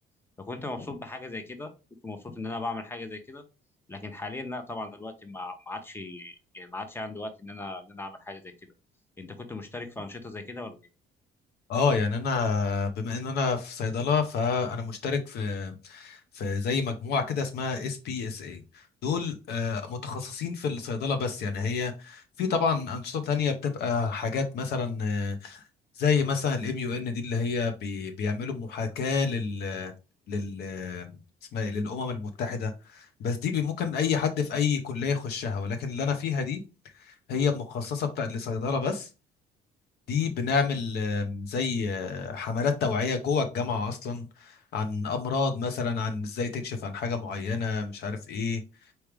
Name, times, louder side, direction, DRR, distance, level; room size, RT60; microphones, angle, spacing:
voice 1, 0.4-1.7 2.0-3.4 3.9-8.5 9.2-10.8, left 2 dB, 15° left, 8 dB, 0.9 m, -38 dB
voice 2, 11.7-25.7 26.0-29.9 30.3-31.2 31.5-36.6 36.9-39.1 40.1-48.6, left 5 dB, 70° left, 7 dB, 1.0 m, -29 dB
4.6 x 3.4 x 3.4 m, 0.30 s
cardioid pair, 110°, 17 cm